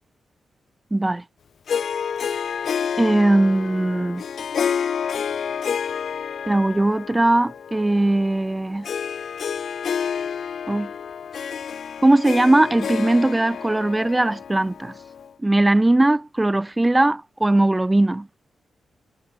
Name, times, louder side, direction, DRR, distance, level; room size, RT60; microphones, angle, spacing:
voice 1, 0.9-1.2 3.0-4.2 6.5-8.9 10.7-10.9 12.0-14.9 15.4-18.3, right 2 dB, 20° right, 0.4 m, -19 dB
Harp, 1.7-15.3, left 7 dB, 70° left, 1.3 m, -29 dB
cardioid pair, 65°, 0 cm